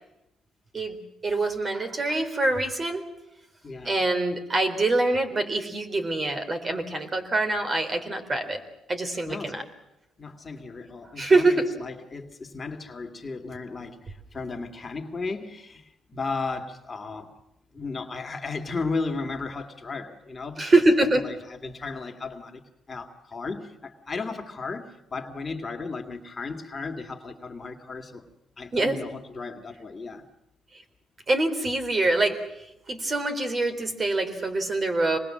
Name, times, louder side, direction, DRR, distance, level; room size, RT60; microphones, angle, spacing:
voice 1, 0.7-3.0 3.9-8.6 8.9-9.6 11.2-11.7 20.6-21.2 28.7-29.0 31.3-32.4 32.9-35.2, right 2 dB, 35° right, 6 dB, 3.9 m, -24 dB
voice 2, 3.6-4.0 9.3-9.6 10.2-17.3 17.7-20.8 21.2-22.6 22.9-28.3 28.6-30.2, left 4 dB, 30° left, 4 dB, 2.3 m, -35 dB
25.5 x 20.5 x 7.6 m, 0.90 s
cardioid pair, 90°, 0 cm